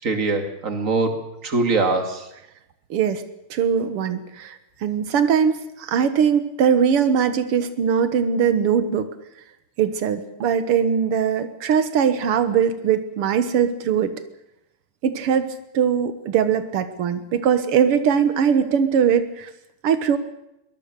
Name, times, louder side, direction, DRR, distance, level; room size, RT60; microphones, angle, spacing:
voice 1, 0.0-2.2, right 3 dB, 35° right, 5 dB, 2.7 m, -23 dB
voice 2, 2.9-3.2 3.5-9.1 9.8-14.1 15.0-19.5 19.8-20.2, right 7 dB, 90° right, 10 dB, 2.2 m, -21 dB
23.0 x 20.0 x 6.8 m, 0.85 s
omnidirectional pair, 2.4 m